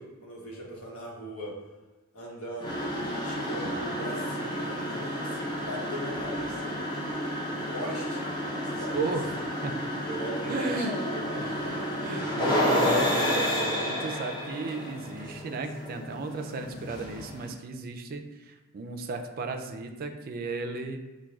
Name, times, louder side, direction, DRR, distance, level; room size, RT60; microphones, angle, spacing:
voice 1, 0.0-1.5 2.1-6.8 7.5-8.4 8.6-9.2 10.1-12.4, equal, 80° left, -4 dB, 1.1 m, -40 dB
sound 1, 2.6-17.5, equal, 20° left, 0.5 m, -31 dB
voice 2, 8.9-9.9 10.5-10.9 11.2-11.5 12.0-21.0, right 3 dB, 45° right, 5 dB, 0.3 m, -34 dB
5.9 x 2.2 x 2.3 m, 1.1 s
head